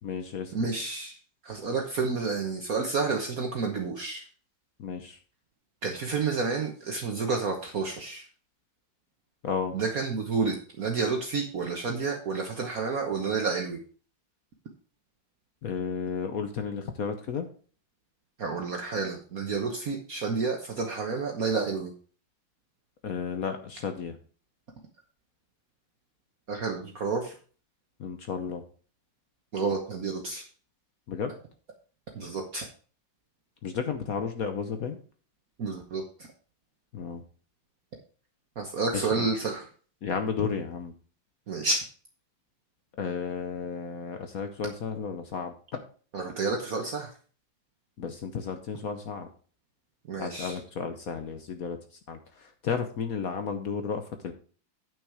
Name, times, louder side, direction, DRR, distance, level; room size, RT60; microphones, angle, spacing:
voice 1, 0.0-0.7 4.8-5.2 9.4-9.7 15.6-17.5 23.0-24.2 28.0-28.6 31.1-31.3 33.6-35.0 36.9-37.2 38.9-39.3 40.0-40.9 43.0-45.8 48.0-49.3 50.2-54.3, left 6 dB, 55° left, 7 dB, 1.1 m, -33 dB
voice 2, 0.5-1.1 1.4-4.2 5.8-8.2 9.7-13.8 18.4-21.9 26.5-27.3 29.5-30.4 32.1-32.6 35.6-36.0 38.6-39.7 41.5-41.8 46.1-47.1 50.1-50.6, right 4 dB, 50° right, 2 dB, 1.5 m, -30 dB
9.1 x 6.1 x 4.8 m, 0.41 s
omnidirectional pair, 2.1 m